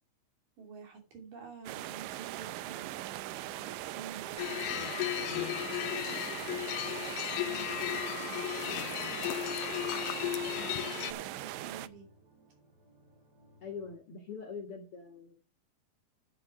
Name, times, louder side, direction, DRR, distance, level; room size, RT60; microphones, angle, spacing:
voice 1, 0.6-6.6 7.4-8.5 9.1-9.4 9.9-12.1, right 5 dB, 65° right, 2 dB, 4.4 m, -51 dB
sound 1, 1.7-11.9, right 15 dB, 80° right, 2.2 m, -40 dB
sound 2, 4.4-11.1, left 14 dB, 75° left, 2.0 m, -35 dB
sound 3, 4.4-14.0, equal, 30° right, 3.0 m, -62 dB
voice 2, 13.6-15.3, left 5 dB, 50° left, 4 dB, 1.9 m, -43 dB
9.9 x 8.1 x 4.7 m, 0.32 s
omnidirectional pair, 4.3 m